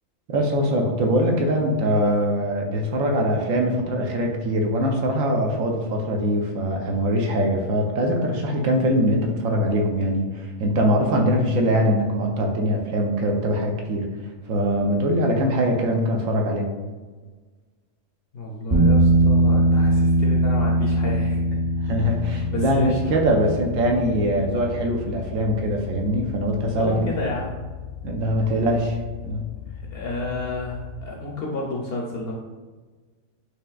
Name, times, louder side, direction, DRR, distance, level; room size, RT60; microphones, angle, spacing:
voice 1, 0.3-14.1 14.5-16.7 21.9-27.1 28.0-29.0 29.2-29.5, equal, 80° right, 2 dB, 1.0 m, -22 dB
voice 2, 18.3-21.6 22.1-23.1 26.8-27.6 29.6-32.3, left 2 dB, 60° left, -2 dB, 0.6 m, -31 dB
sound 1, 18.7-31.0, right 1 dB, 50° right, 0.7 m, -24 dB
5.0 x 2.8 x 2.3 m, 1.3 s
omnidirectional pair, 1.4 m